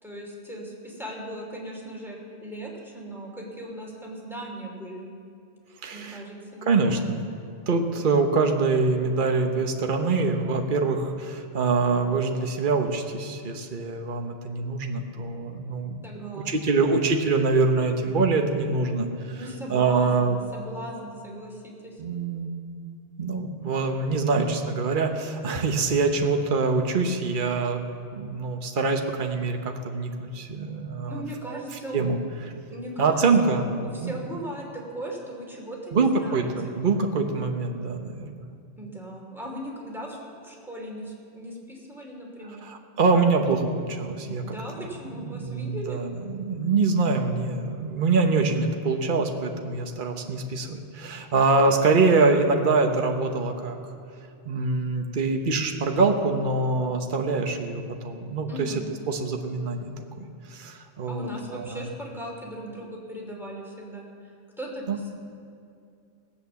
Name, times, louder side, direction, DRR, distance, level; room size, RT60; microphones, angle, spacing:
voice 1, 0.0-5.1 5.9-7.1 16.0-16.8 19.3-22.0 31.0-32.0 32.7-33.5 33.8-36.8 38.8-42.7 44.4-46.0 58.5-58.8 61.1-64.3 64.6-65.1, right 1 dB, ahead, -3 dB, 2.9 m, -38 dB
voice 2, 5.8-6.2 6.6-7.0 7.7-19.4 19.7-20.4 22.0-22.5 23.2-27.9 28.1-31.2 31.5-31.6 31.9-32.2 33.0-33.7 34.0-34.2 35.9-38.3 42.6-44.4 44.8-44.9 45.2-53.8 54.4-58.7 59.1-61.9 64.9-65.0, right 4 dB, 45° right, 4 dB, 1.2 m, -24 dB
18.0 x 8.7 x 7.1 m, 2.5 s
omnidirectional pair, 1.3 m